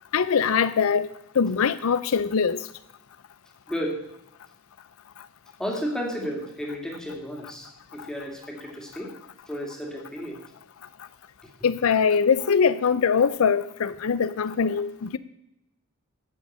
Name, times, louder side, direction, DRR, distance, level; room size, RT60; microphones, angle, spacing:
voice 1, 0.1-1.1 1.4-2.7 11.6-15.2, left 6 dB, 70° left, 15 dB, 0.5 m, -22 dB
voice 2, 3.7-4.0 5.6-9.1 9.5-10.4, equal, 5° left, 0 dB, 2.4 m, -32 dB
13.0 x 6.3 x 8.6 m, 0.83 s
head